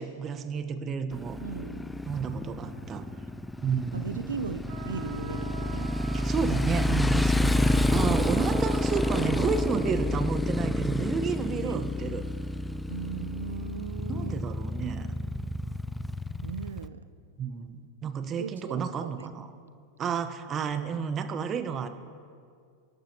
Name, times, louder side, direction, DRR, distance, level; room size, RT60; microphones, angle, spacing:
voice 1, 0.0-1.4 2.1-3.1 3.6-4.2 6.1-12.2 14.1-15.1 17.4-19.5 20.0-21.9, right 6 dB, 35° right, 10 dB, 1.0 m, -31 dB
Motorcycle, 1.1-16.9, left 1 dB, 5° left, 0.5 m, -29 dB
voice 2, 1.4-2.0 3.9-5.9 7.5-7.9 11.6-11.8 12.9-14.5 16.4-17.1 18.4-19.3, right 7 dB, 85° right, 12 dB, 0.4 m, -38 dB
sound 1, 4.7-10.1, right 3 dB, 65° right, 1.6 m, -44 dB
24.5 x 11.5 x 2.9 m, 2.2 s
hypercardioid pair, 95°, 0 cm